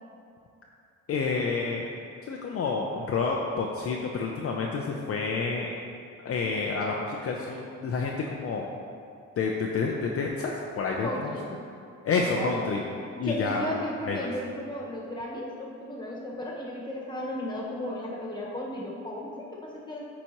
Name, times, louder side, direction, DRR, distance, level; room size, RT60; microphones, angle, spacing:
voice 1, 1.1-1.9 2.3-5.7 6.2-8.7 9.4-11.3 12.0-12.8 13.2-13.7 14.1-14.3, left 4 dB, 50° left, -1 dB, 0.6 m, -29 dB
voice 2, 11.0-11.5 12.2-12.6 13.1-20.1, left 1 dB, 15° left, -4 dB, 1.5 m, -35 dB
9.3 x 4.2 x 3.0 m, 2.4 s
cardioid pair, 90°, 30 cm